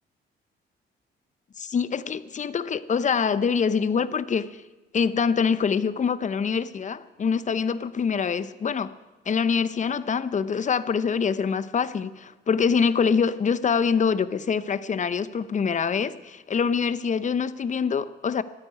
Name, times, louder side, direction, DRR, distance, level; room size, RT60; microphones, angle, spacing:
voice 1, 1.6-4.6 4.9-8.9 9.3-18.4, left 6 dB, 40° left, 0.8 m, -25 dB
13.0 x 9.7 x 9.3 m
cardioid pair, 90°, 20 cm